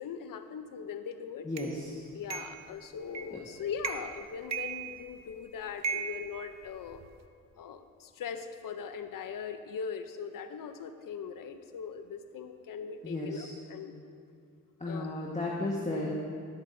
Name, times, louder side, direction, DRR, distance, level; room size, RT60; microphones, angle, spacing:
voice 1, 0.0-1.5 2.1-7.0 7.6-14.0 14.8-15.1, left 7 dB, 75° left, 9 dB, 0.8 m, -40 dB
voice 2, 1.4-2.1 3.3-3.4 13.0-13.5 14.8-16.1, left 2 dB, 20° left, -3 dB, 1.5 m, -34 dB
sound 1, 1.6-1.7 2.3-2.6 3.1-3.4 3.8-4.2 4.5-5.3 5.8-7.1, right 6 dB, 50° right, 0.7 m, -37 dB
17.5 x 8.1 x 2.7 m, 2.4 s
cardioid pair, 50°, 34 cm